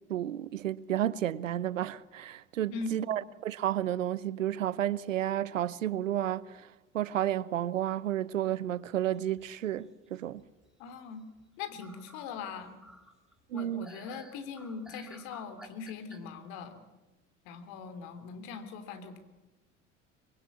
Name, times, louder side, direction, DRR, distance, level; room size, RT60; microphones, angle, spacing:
voice 1, 0.1-6.7 6.9-10.4 13.5-13.9, right 12 dB, 85° right, 0.8 m, -31 dB
voice 2, 2.7-3.1 10.8-11.2 11.6-12.7 13.5-16.8 17.4-19.2, left 5 dB, 65° left, 3.4 m, -41 dB
sound 1, 9.1-9.9 10.4-11.0 11.4-11.5 11.8-16.2, equal, ahead, 4.0 m, -54 dB
24.5 x 22.5 x 8.4 m
hypercardioid pair, 65°, 38 cm